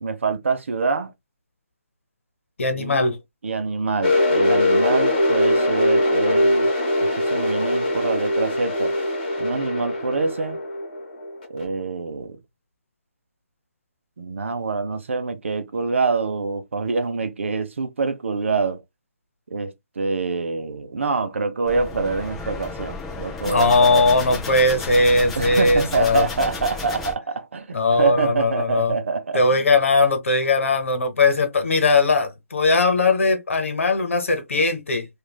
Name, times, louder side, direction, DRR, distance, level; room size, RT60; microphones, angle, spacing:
voice 1, 0.0-1.1 2.7-3.1 3.4-6.7 7.0-8.9 9.4-10.6 11.5-12.4 14.2-18.8 19.5-24.1 25.4-29.7, right 4 dB, 60° right, 0.6 m, -26 dB
voice 2, 2.6-3.2 23.4-26.2 27.7-28.9 29.3-35.1, left 3 dB, 65° left, 1.0 m, -19 dB
sound 1, 4.0-11.6, left 1 dB, 35° left, 1.3 m, -21 dB
sound 2, 21.7-27.1, left 3 dB, ahead, 0.3 m, -33 dB
3.1 x 2.5 x 2.2 m
hypercardioid pair, 175°, 8 cm